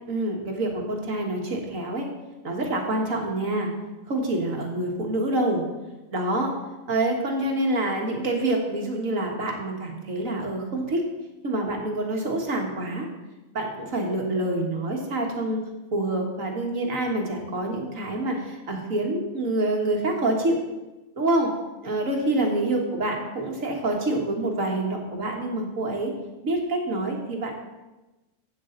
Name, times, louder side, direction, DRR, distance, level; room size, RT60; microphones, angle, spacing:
voice 1, 0.0-2.1 2.4-3.7 4.1-5.6 6.1-6.5 6.9-11.0 11.4-13.1 13.5-15.6 15.9-20.6 21.2-21.5 21.8-26.1 26.4-27.5, right 2 dB, 80° right, 1 dB, 2.1 m, -26 dB
12.5 x 8.7 x 3.9 m, 1.1 s
omnidirectional pair, 1.4 m